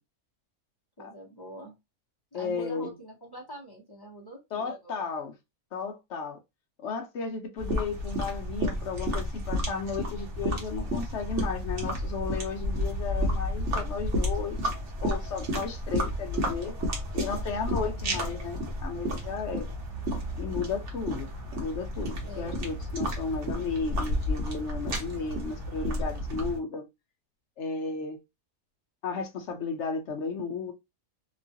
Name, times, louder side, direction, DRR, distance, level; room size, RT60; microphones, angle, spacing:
voice 1, 1.0-1.7 2.3-5.1 22.3-22.7, right 1 dB, 20° left, 0.6 m, -44 dB
voice 2, 2.3-2.9 4.5-5.3 5.7-6.4 6.8-14.6 15.0-16.7 17.1-19.7 20.4-21.3 21.6-26.9 27.6-28.2 29.0-30.7, left 5 dB, 65° left, 0.8 m, -34 dB
sound 1, 7.6-26.6, equal, 55° right, 1.2 m, -31 dB
2.9 x 2.3 x 2.6 m
omnidirectional pair, 1.6 m